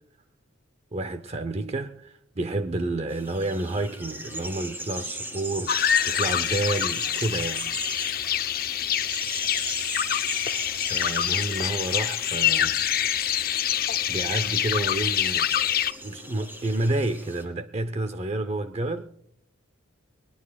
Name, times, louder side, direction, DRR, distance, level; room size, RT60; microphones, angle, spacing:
voice 1, 0.9-7.7 10.7-12.8 13.6-15.8 16.0-19.1, right 2 dB, 30° right, 0.6 m, -30 dB
sound 1, 3.1-17.4, right 1 dB, 10° right, 2.1 m, -38 dB
sound 2, 5.7-15.9, left 10 dB, 50° left, 0.5 m, -26 dB
22.5 x 19.5 x 2.3 m
head